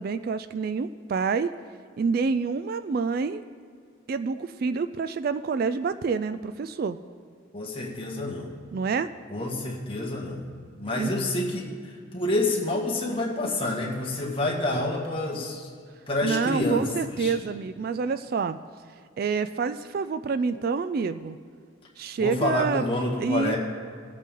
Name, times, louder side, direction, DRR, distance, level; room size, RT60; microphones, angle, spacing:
voice 1, 0.0-1.5 2.0-3.4 4.1-7.0 8.7-9.1 11.0-11.1 16.2-18.6 19.2-21.4 22.0-22.8 23.2-23.6, right 5 dB, 45° right, 12 dB, 0.3 m, -27 dB
voice 2, 7.5-8.5 9.3-10.4 10.7-15.7 16.1-16.8 17.2-17.3 22.2-23.6, left 2 dB, 25° left, -2 dB, 1.8 m, -28 dB
19.5 x 8.3 x 3.8 m, 2.1 s
head